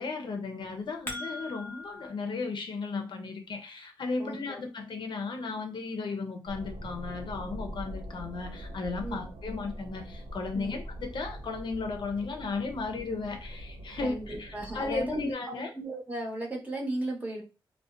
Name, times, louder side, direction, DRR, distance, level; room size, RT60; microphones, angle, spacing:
voice 1, 0.0-15.7, left 4 dB, 60° left, 0.4 m, -35 dB
sound 1, 0.6-2.1, left 2 dB, 25° left, 0.7 m, -40 dB
voice 2, 4.2-4.6 9.0-9.2 10.5-10.8 14.0-17.4, right 1 dB, 20° right, 0.9 m, -36 dB
sound 2, 6.5-15.3, equal, 75° right, 0.4 m, -43 dB
2.4 x 2.1 x 2.4 m
cardioid pair, 65°, 9 cm